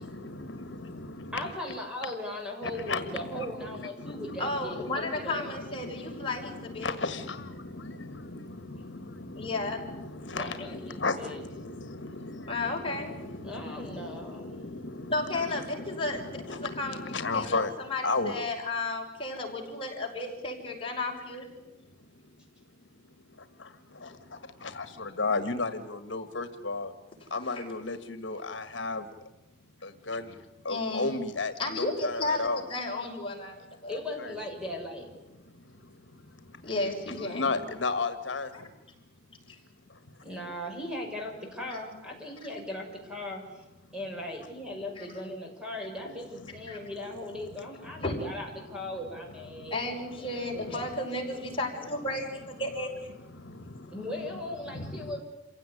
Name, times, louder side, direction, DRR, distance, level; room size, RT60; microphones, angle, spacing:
voice 1, 0.0-1.5 2.6-18.4 21.8-22.3 22.6-22.8 23.1-26.9 27.3-29.3 29.8-32.7 34.2-34.4 35.3-36.7 37.1-38.7 39.9-40.2 46.7-46.9 47.6-48.0 48.8-49.0 49.5-49.7 50.7-50.8 53.1-54.0 54.3-55.1, left 3 dB, 70° left, 10 dB, 1.6 m, -36 dB
voice 2, 1.3-5.5 10.3-11.4 13.4-14.5 17.3-17.4 27.7-27.8 33.9-35.1 40.2-43.6 43.9-50.8 51.3-51.4 53.9-55.2, left 1 dB, 5° right, 0 dB, 6.6 m, -38 dB
voice 3, 4.4-7.0 9.4-9.9 12.5-13.2 15.1-21.5 27.5-27.7 30.7-31.2 31.6-34.0 36.6-37.5 39.5-39.6 41.7-41.8 45.0-45.1 46.7-46.8 48.0-48.2 49.7-53.1, left 2 dB, 30° left, 0 dB, 5.8 m, -33 dB
28.0 x 17.0 x 9.9 m, 1.0 s
head